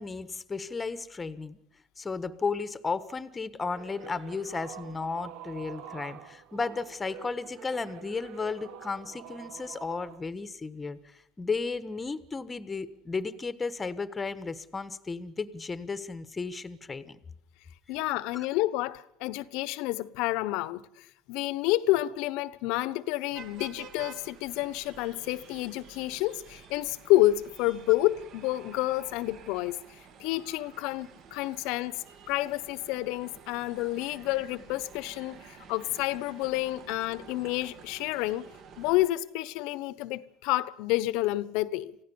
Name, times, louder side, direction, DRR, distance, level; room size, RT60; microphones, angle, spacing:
voice 1, 0.0-1.6 2.0-17.2 33.8-33.9, left 4 dB, 15° left, 1.3 m, -34 dB
sound 1, 3.6-10.2, right 9 dB, 70° right, 1.8 m, -46 dB
voice 2, 17.9-29.8 30.2-38.5 38.8-42.0, left 17 dB, 70° left, 1.1 m, -29 dB
sound 2, 23.3-39.1, right 6 dB, 50° right, 2.4 m, -51 dB
28.0 x 16.0 x 7.1 m
cardioid pair, 140°, 0 cm